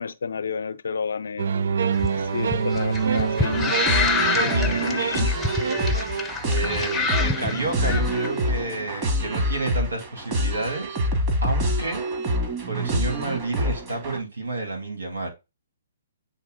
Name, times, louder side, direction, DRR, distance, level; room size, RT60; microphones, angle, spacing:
voice 1, 0.0-1.5 2.2-3.8 4.2-5.7, left 6 dB, 70° left, 0.6 m, -31 dB
sound 1, 1.4-6.3, right 6 dB, 65° right, 0.4 m, -26 dB
sound 2, 1.9-8.3, left 4 dB, 10° left, 0.7 m, -27 dB
sound 3, 3.9-14.2, equal, 30° right, 1.9 m, -26 dB
voice 2, 4.3-4.9 6.4-11.0 11.4-12.0 12.7-15.3, right 3 dB, 85° right, 2.6 m, -30 dB
8.2 x 2.9 x 3.9 m
hypercardioid pair, 135°, 0 cm